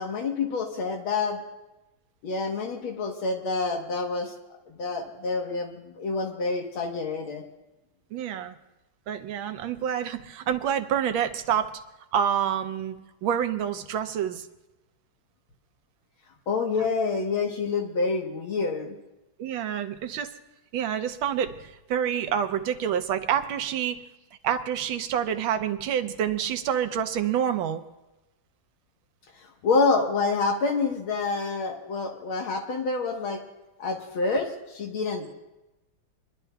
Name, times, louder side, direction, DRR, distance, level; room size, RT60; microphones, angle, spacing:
voice 1, 0.0-1.4 2.2-4.3 4.7-7.4 16.5-19.0 29.6-33.4 33.8-35.3, left 4 dB, 75° left, 2 dB, 2.0 m, -27 dB
voice 2, 8.1-8.5 9.1-11.8 12.1-13.0 13.2-14.5 19.4-20.3 20.7-24.0 24.4-27.8, right 9 dB, 75° right, 9 dB, 1.4 m, -27 dB
27.5 x 11.5 x 2.3 m, 1.0 s
omnidirectional pair, 2.3 m